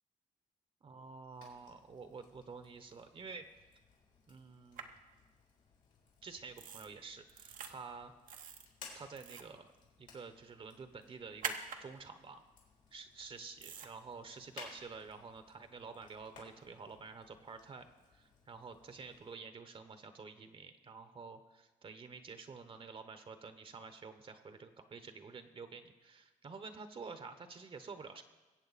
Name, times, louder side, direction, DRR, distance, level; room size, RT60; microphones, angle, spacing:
voice 1, 0.8-3.4 4.3-4.9 6.2-8.1 8.9-9.7 10.0-11.5 11.8-12.4 12.9-28.2, right 4 dB, 40° right, 9 dB, 1.0 m, -49 dB
Fire, 1.3-19.4, left 4 dB, 90° left, 3.8 m, -60 dB
sound 1, 4.8-4.9 6.6-6.9 7.3-7.7 8.3-8.7 9.1-9.5 11.4-11.8 13.6-13.9, right 7 dB, 80° right, 1.1 m, -43 dB
22.5 x 8.1 x 4.1 m, 1.2 s
cardioid pair, 105°, 13 cm